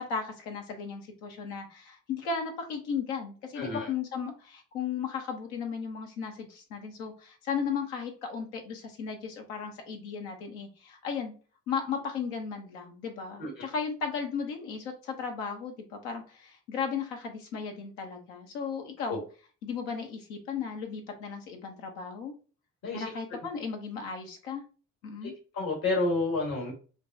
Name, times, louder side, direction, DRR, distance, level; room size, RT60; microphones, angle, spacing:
voice 1, 0.0-11.3 11.7-19.2 19.6-22.3 22.9-24.6 25.0-25.3, left 6 dB, 75° left, 4 dB, 0.9 m, -35 dB
voice 2, 3.6-3.9 13.4-13.5 19.1-19.2 22.8-23.1 25.2-26.7, left 3 dB, 60° left, -1 dB, 1.5 m, -30 dB
5.0 x 2.3 x 2.6 m, 0.37 s
hypercardioid pair, 45°, 39 cm